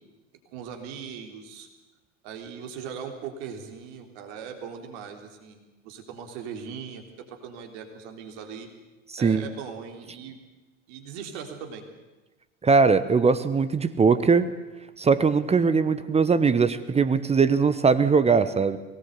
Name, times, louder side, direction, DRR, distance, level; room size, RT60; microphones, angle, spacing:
voice 1, 0.5-1.7 2.2-8.7 9.2-10.4 10.9-11.8, right 7 dB, 55° right, 4 dB, 3.8 m, -39 dB
voice 2, 12.6-14.5 15.0-18.8, right 5 dB, 15° right, 13 dB, 1.0 m, -20 dB
23.5 x 18.0 x 8.3 m, 1.1 s
figure-of-eight pair, 75°, 38 cm